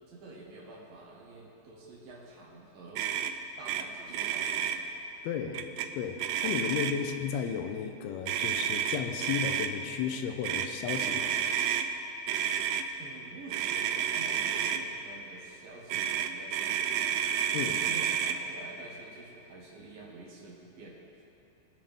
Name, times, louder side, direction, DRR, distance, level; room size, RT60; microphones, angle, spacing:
voice 1, 0.1-3.3 3.6-4.9 6.9-7.1 13.0-21.2, right 3 dB, 70° right, -3 dB, 3.2 m, -48 dB
Motor vehicle (road), 3.0-3.3 3.7-3.8 4.1-4.8 5.5-5.9 6.2-7.1 8.3-9.7 10.4-11.9 12.3-12.8 13.5-14.8 15.9-18.4, right 9 dB, 85° right, 1.9 m, -30 dB
voice 2, 5.2-5.7 5.9-11.3 17.5-17.7, left 8 dB, 90° left, 6 dB, 2.7 m, -34 dB
21.5 x 7.5 x 3.6 m, 2.9 s
omnidirectional pair, 4.4 m